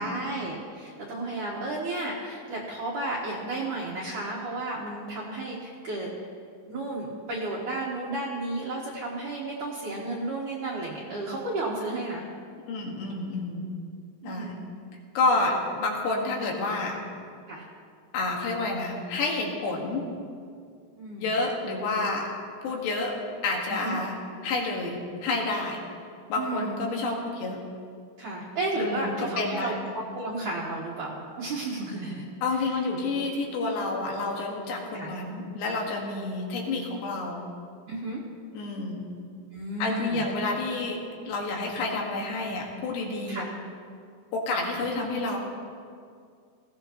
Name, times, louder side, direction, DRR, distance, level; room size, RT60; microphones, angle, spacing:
voice 1, 0.0-6.1 6.7-12.3 14.2-14.7 17.5-17.7 21.0-21.3 23.7-24.0 26.4-26.8 28.2-32.3 32.6-32.8 34.9-35.2 37.9-38.2 39.5-40.2 43.3-43.5, right 2 dB, 60° right, -5 dB, 2.4 m, -33 dB
voice 2, 12.7-13.7 14.2-14.6 15.2-17.0 18.1-20.0 21.2-22.3 22.6-23.1 23.4-24.2 24.4-25.8 26.3-27.6 28.8-29.8 32.4-37.4 38.5-39.1 39.8-41.0 41.3-43.5 44.3-45.4, left 3 dB, 80° left, -1 dB, 3.9 m, -29 dB
19.5 x 15.5 x 3.0 m, 2.2 s
omnidirectional pair, 4.9 m